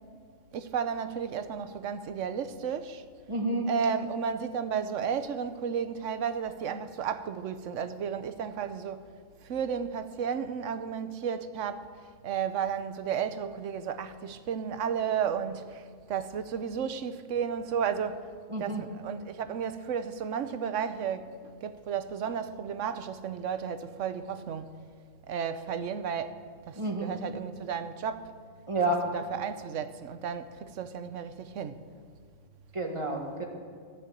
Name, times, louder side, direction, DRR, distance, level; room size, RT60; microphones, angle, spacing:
voice 1, 0.5-3.0 3.7-9.0 9.4-11.9 12.2-18.3 18.6-24.7 25.3-26.3 26.7-28.3 29.1-31.8, right 7 dB, 80° right, 1.1 m, -33 dB
voice 2, 3.3-3.7 18.5-18.8 26.8-27.1 28.7-29.1 32.7-33.5, right 2 dB, 25° right, 1.8 m, -29 dB
14.5 x 6.8 x 8.8 m
omnidirectional pair, 1.3 m